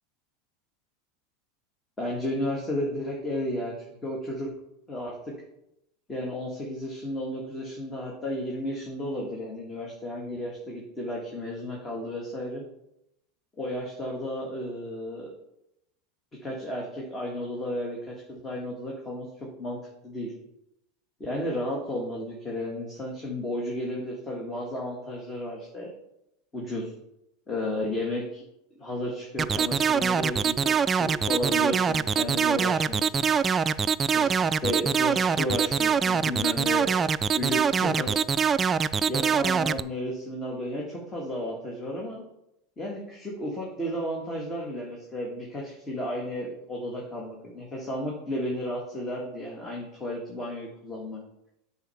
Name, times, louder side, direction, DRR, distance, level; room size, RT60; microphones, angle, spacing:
voice 1, 2.0-4.5 4.9-5.3 6.1-12.6 13.6-15.3 16.4-19.8 20.0-20.3 21.2-25.9 26.5-26.9 27.5-28.4 28.8-33.2 34.1-36.9 37.3-38.2 39.1-42.2 42.8-51.2, left 1 dB, 20° left, -2 dB, 1.8 m, -33 dB
sound 1, 29.4-39.8, right 6 dB, 25° right, 0.3 m, -24 dB
8.2 x 4.1 x 5.8 m, 0.84 s
supercardioid pair, 110°, 0 cm